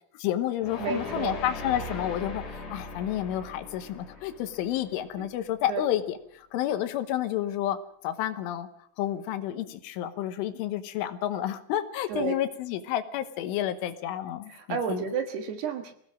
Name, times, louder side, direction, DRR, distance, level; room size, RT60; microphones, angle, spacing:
voice 1, 0.2-2.4 2.7-7.8 8.0-8.7 9.0-15.0, left 12 dB, 80° left, 10 dB, 3.5 m, -30 dB
sound 1, 0.6-5.7, left 2 dB, 40° left, 3.5 m, -40 dB
voice 2, 0.8-1.4 5.2-5.3 5.7-5.8 12.1-12.4 14.5-15.9, right 6 dB, 65° right, 6 dB, 3.2 m, -31 dB
24.5 x 17.5 x 6.4 m, 0.65 s
omnidirectional pair, 5.8 m